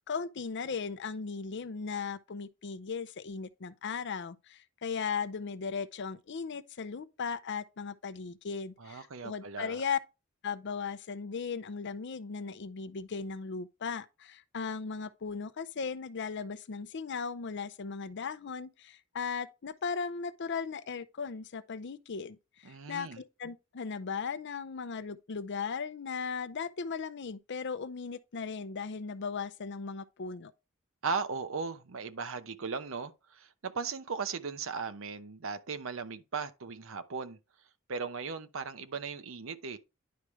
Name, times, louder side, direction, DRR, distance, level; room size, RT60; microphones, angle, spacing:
voice 1, 0.1-10.0 10.4-30.5, left 5 dB, 60° left, 0.6 m, -37 dB
voice 2, 8.8-9.8 22.6-23.2 31.0-37.4 37.9-39.8, right 5 dB, 70° right, 0.8 m, -37 dB
10.5 x 4.8 x 3.2 m
head